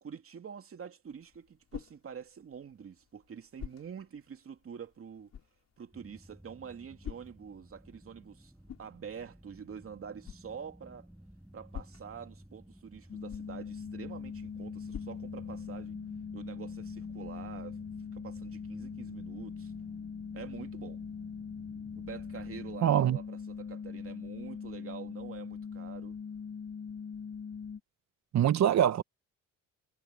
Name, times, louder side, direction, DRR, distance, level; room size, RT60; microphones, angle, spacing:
voice 1, 0.0-5.3 5.8-8.5 8.8-11.1 11.5-16.0 16.3-17.8 18.1-19.7 20.3-21.0 21.9-26.2, right 7 dB, 45° right, 2.7 m, -46 dB
sound 1, 1.0-16.0, left 9 dB, 60° left, 6.1 m, -51 dB
sound 2, 5.9-22.8, right 1 dB, 5° right, 5.2 m, -54 dB
sound 3, 13.1-27.8, left 6 dB, 45° left, 6.1 m, -41 dB
voice 2, 22.8-23.2 28.3-29.0, right 10 dB, 65° right, 1.4 m, -24 dB
cardioid pair, 90°, 30 cm